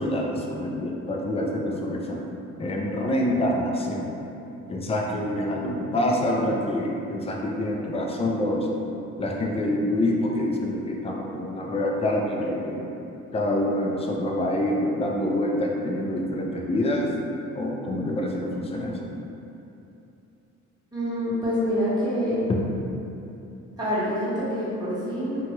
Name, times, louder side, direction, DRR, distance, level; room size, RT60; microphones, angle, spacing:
voice 1, 0.0-2.2 2.6-4.2 4.7-8.7 9.2-12.9 13.3-17.1 17.5-19.0, left 1 dB, 20° left, -1 dB, 0.3 m, -26 dB
voice 2, 20.9-22.3 23.8-25.4, equal, 15° right, -11 dB, 1.0 m, -26 dB
2.8 x 2.2 x 2.9 m, 2.9 s
cardioid pair, 90°, 30 cm